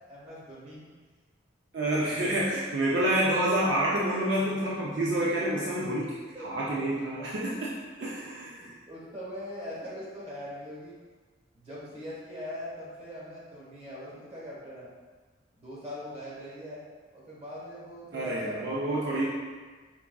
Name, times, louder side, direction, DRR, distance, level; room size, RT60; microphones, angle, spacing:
voice 1, 0.1-0.9 6.3-7.0 8.6-11.0 11.5-14.9 15.6-16.8 17.1-19.3, equal, 30° right, -7 dB, 1.2 m, -42 dB
voice 2, 1.7-6.2 6.4-7.7 8.0-8.7 18.1-19.3, right 1 dB, 65° right, -6 dB, 0.5 m, -28 dB
4.8 x 3.4 x 2.3 m, 1.4 s
head